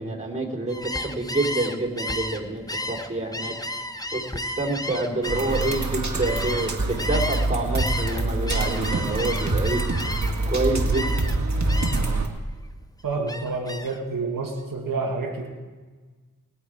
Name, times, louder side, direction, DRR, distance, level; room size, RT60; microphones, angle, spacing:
voice 1, 0.0-3.8 4.1-9.8 10.5-11.3, right 2 dB, 20° right, -1 dB, 3.4 m, -27 dB
Gull seagull, 0.7-7.5 7.8-10.5 10.9-11.4 11.7-12.2 12.5-14.0, left 1 dB, 10° left, 0.9 m, -33 dB
sound 1, 5.2-12.3, right 2 dB, 55° right, 1.8 m, -25 dB
voice 2, 13.0-15.5, right 3 dB, 90° right, 1 dB, 1.5 m, -28 dB
20.5 x 8.5 x 4.9 m, 1.4 s
cardioid pair, 45°, 33 cm